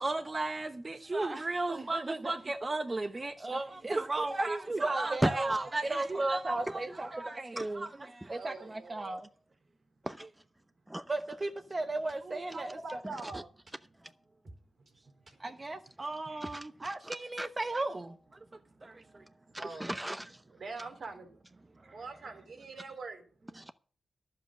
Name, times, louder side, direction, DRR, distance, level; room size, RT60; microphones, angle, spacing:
voice 1, 0.0-9.3 11.1-12.7 15.4-18.2 18.8-19.2, right 2 dB, 35° right, 1.0 m, -34 dB
voice 2, 5.2-5.6 6.7-6.8 7.6-7.7 8.2-8.3 10.0-10.3 10.9-11.1 13.0-13.4 14.0-14.1 16.4-17.5 19.5-20.4 20.8-20.9 23.5-23.7, right 1 dB, 10° right, 0.7 m, -36 dB
voice 3, 8.3-9.2 12.2-13.5 14.8-15.1 16.3-16.4 18.4-19.2 19.5-19.9 20.6-21.4 21.8-23.3, right 3 dB, 75° right, 2.9 m, -45 dB
sound 1, 11.7-11.8 12.1-12.2 12.5-12.6 12.9-13.0 13.3-13.7 14.1-14.2 14.4-14.6 14.9-15.0 15.3-15.4 15.6-15.7 16.0-16.1 16.4-16.6 16.8-17.4, right 1 dB, 55° right, 3.7 m, -52 dB
11.5 x 7.6 x 7.4 m
cardioid pair, 55°, 0 cm